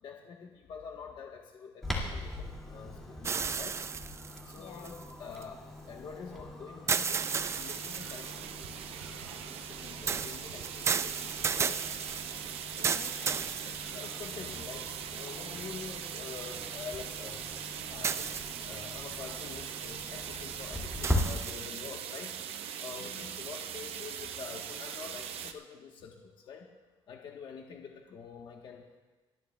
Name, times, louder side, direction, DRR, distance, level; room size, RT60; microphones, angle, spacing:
voice 1, 0.0-3.8 4.4-5.6 5.9-8.8 9.7-11.8 13.9-17.4 17.9-22.4 22.8-26.7 27.1-29.0, left 6 dB, 50° left, 1 dB, 1.1 m, -46 dB
Clock, 1.8-21.2, left 1 dB, 5° left, 2.2 m, -42 dB
sound 1, 3.2-5.4 6.9-8.5 10.1-14.3 15.0-15.1 18.0-18.9 21.0-21.8, right 6 dB, 25° right, 0.3 m, -33 dB
voice 2, 4.5-5.1 12.8-14.1 22.9-23.3, left 7 dB, 70° left, 4 dB, 1.3 m, -51 dB
sound 2, 7.1-25.5, right 8 dB, 75° right, 0.8 m, -41 dB
29.5 x 11.0 x 2.3 m, 1.2 s
cardioid pair, 145°, 10 cm